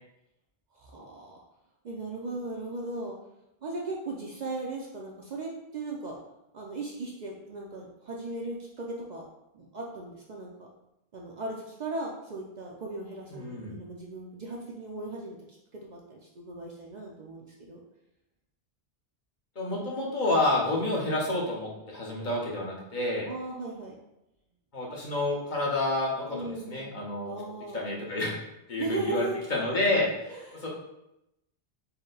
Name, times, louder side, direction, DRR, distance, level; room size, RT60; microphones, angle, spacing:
voice 1, 0.7-1.4 1.8-3.2 3.6-6.2 6.5-9.2 9.5-10.7 11.1-15.6 15.9-17.8 22.3-22.4 23.3-23.9 26.3-26.9 27.2-27.9 28.8-29.4 30.3-30.7, right 2 dB, 55° right, -2 dB, 0.5 m, -37 dB
voice 2, 13.3-13.8 19.6-23.3 24.7-27.3 27.7-28.3 28.7-30.1 30.6-30.7, left 2 dB, 50° left, -4 dB, 1.0 m, -29 dB
4.1 x 2.1 x 3.8 m, 0.87 s
omnidirectional pair, 1.0 m